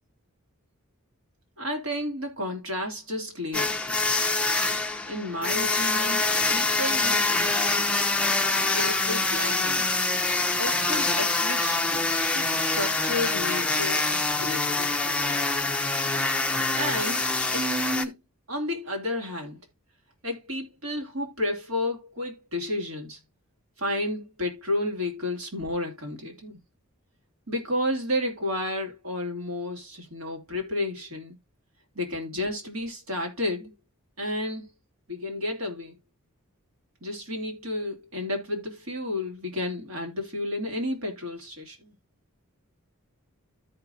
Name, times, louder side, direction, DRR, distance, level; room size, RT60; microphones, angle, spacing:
voice 1, 1.6-3.8 5.1-8.0 8.7-9.9 10.6-15.5 16.8-17.2 17.5-18.1 18.5-19.6 20.2-23.2 23.8-26.6 27.5-31.4 31.9-33.7 34.2-34.7 35.1-36.0 37.0-41.9, left 1 dB, 65° right, 2.7 m, -32 dB
sound 1, 3.5-18.0, left 3 dB, 5° left, 0.7 m, -25 dB
13.5 x 5.1 x 2.7 m
head